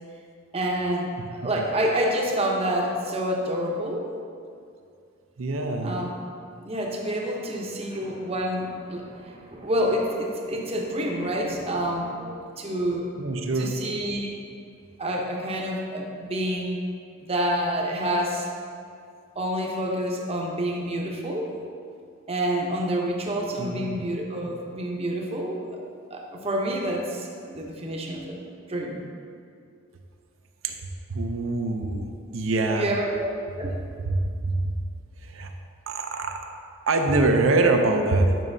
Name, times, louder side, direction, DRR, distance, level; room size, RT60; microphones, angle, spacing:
voice 1, 0.5-4.1 5.8-6.1 6.6-13.1 13.5-14.3 15.0-16.8 17.2-18.5 19.4-21.5 22.3-25.8 26.1-28.4 28.7-29.0 32.8-33.3 33.6-33.8, right 1 dB, 30° right, 0 dB, 0.8 m, -28 dB
voice 2, 5.4-6.0 13.2-13.8 23.6-24.0 30.6-30.8 31.1-32.9 34.0-34.8 35.2-35.5 35.9-36.4 36.9-38.4, right 2 dB, 75° right, 4 dB, 0.6 m, -24 dB
9.1 x 6.1 x 2.7 m, 2.3 s
head